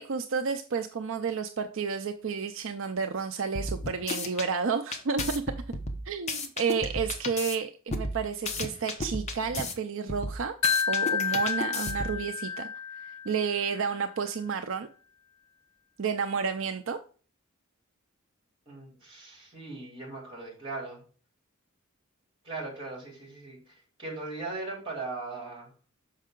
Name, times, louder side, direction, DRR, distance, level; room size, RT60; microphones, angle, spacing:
voice 1, 0.0-5.4 5.7-5.8 6.1-10.5 10.9-12.7 13.0-14.9 16.0-17.0, right 5 dB, 65° right, 7 dB, 0.5 m, -31 dB
sound 1, 3.5-4.5 4.9-7.6 7.9-9.7 10.1-12.2, left 2 dB, 30° left, 0.9 m, -34 dB
Wind chime, 10.6-13.7, left 6 dB, 85° left, 0.9 m, -30 dB
voice 2, 18.6-21.0 22.4-25.7, right 3 dB, 25° right, -1 dB, 3.4 m, -39 dB
6.5 x 5.4 x 3.7 m, 0.40 s
head